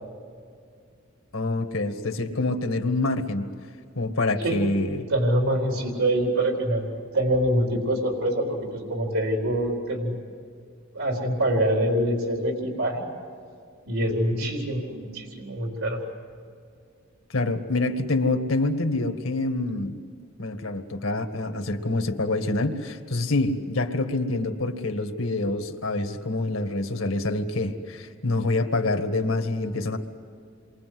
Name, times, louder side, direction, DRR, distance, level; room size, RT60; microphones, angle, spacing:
voice 1, 1.3-3.5 4.0-5.0 14.4-14.5 17.3-20.0 20.4-30.0, left 2 dB, 75° left, 6 dB, 2.0 m, -26 dB
voice 2, 5.1-6.8 7.1-10.1 10.9-13.0 13.9-16.0, right 1 dB, 85° right, 0 dB, 4.3 m, -25 dB
28.5 x 23.0 x 7.9 m, 2.2 s
head